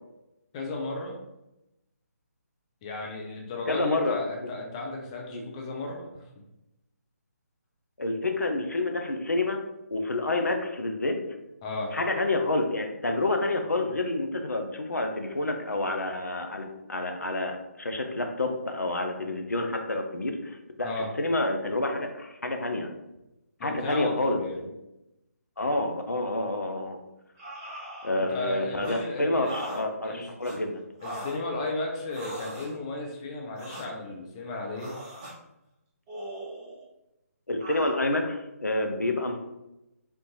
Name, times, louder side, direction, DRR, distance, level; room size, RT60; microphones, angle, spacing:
voice 1, 0.5-1.2 2.8-6.2 11.6-11.9 20.8-21.1 23.6-24.6 28.3-29.5 30.0-30.2 31.0-34.9, left 2 dB, 25° left, 0 dB, 0.5 m, -34 dB
voice 2, 3.7-4.5 5.3-5.4 8.0-9.6 9.9-11.2 11.9-22.9 23.6-24.7 25.6-27.0 28.0-30.8 37.5-39.4, left 2 dB, 80° left, 4 dB, 0.5 m, -28 dB
sound 1, 27.4-28.5 28.8-29.0 29.4-29.8 30.4-30.6 31.0-31.4 32.1-32.7 33.6-33.9 34.8-35.4 36.1-36.8 37.6-37.9, equal, 20° right, 0.8 m, -40 dB
3.5 x 2.5 x 2.8 m, 0.92 s
figure-of-eight pair, 145°, 9 cm